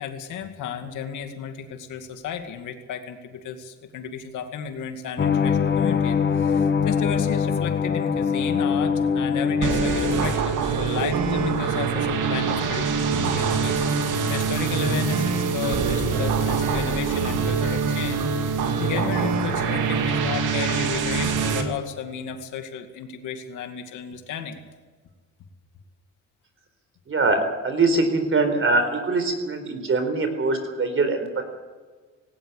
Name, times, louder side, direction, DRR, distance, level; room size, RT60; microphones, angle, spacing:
voice 1, 0.0-24.6, left 7 dB, 85° left, 6 dB, 2.3 m, -33 dB
sound 1, 5.2-10.4, left 6 dB, 35° left, 1.3 m, -23 dB
sound 2, 9.6-21.6, right 5 dB, 85° right, 2.6 m, -24 dB
voice 2, 27.1-31.4, right 3 dB, 45° right, 7 dB, 4.4 m, -23 dB
18.0 x 17.5 x 8.4 m, 1.4 s
cardioid pair, 90°, 30 cm